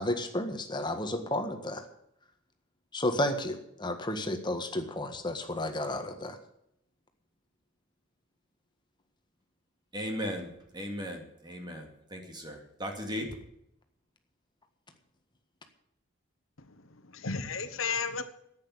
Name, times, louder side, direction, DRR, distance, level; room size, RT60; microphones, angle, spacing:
voice 1, 0.0-1.8 2.9-6.4, left 1 dB, 20° left, 6 dB, 1.6 m, -32 dB
voice 2, 9.9-13.4, equal, 20° right, 3 dB, 2.4 m, -37 dB
voice 3, 16.6-18.2, left 5 dB, 90° left, 10 dB, 1.2 m, -34 dB
10.5 x 9.2 x 9.6 m, 0.77 s
head